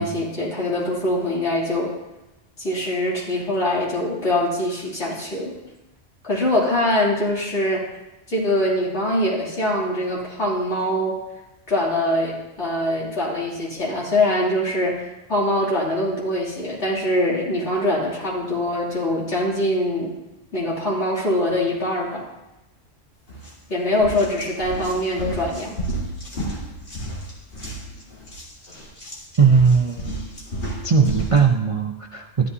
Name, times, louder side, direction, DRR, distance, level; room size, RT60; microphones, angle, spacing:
voice 1, 0.0-1.9 2.6-5.6 6.2-7.9 8.3-11.2 11.7-20.1 20.5-22.2 23.7-25.8, left 1 dB, 70° left, -6 dB, 3.2 m, -23 dB
sound 1, 23.3-23.5 23.9-31.4, right 1 dB, 50° left, 2.2 m, -32 dB
voice 2, 29.4-30.0 30.8-32.5, right 5 dB, 40° right, 2 dB, 0.4 m, -18 dB
12.5 x 11.0 x 2.8 m, 0.98 s
omnidirectional pair, 1.3 m